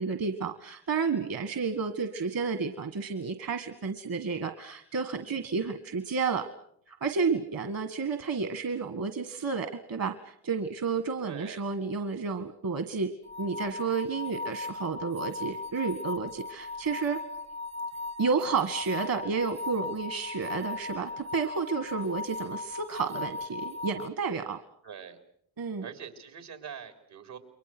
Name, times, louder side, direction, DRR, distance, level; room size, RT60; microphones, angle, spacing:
voice 1, 0.0-6.4 6.9-13.1 13.4-17.2 18.2-24.6 25.6-25.9, right 5 dB, 55° right, 8 dB, 1.9 m, -31 dB
voice 2, 11.2-11.6 24.8-25.2 25.8-27.4, right 7 dB, 80° right, 6 dB, 4.0 m, -43 dB
sound 1, 13.3-24.1, left 3 dB, 40° right, 0.9 m, -38 dB
29.5 x 23.0 x 6.2 m, 0.67 s
cardioid pair, 65°, 40 cm